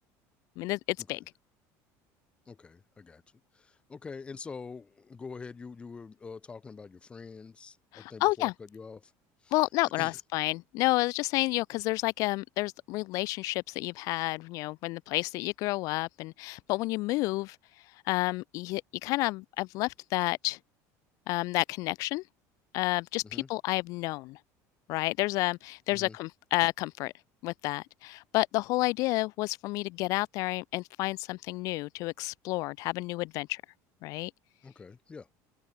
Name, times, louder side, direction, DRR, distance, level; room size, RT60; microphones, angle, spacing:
voice 1, 2.5-3.2 3.9-9.1 9.4-9.6 10.0-10.2 23.2-23.5 25.9-26.2 34.6-35.3, left 5 dB, 15° left, 1.7 m, -45 dB
voice 2, 7.9-8.5 9.5-17.6 18.1-20.6 21.3-22.2 22.7-24.4 24.9-27.1 27.4-33.6 34.0-34.3, left 21 dB, 50° left, 0.5 m, -30 dB
open air
cardioid pair, 175°, 7 cm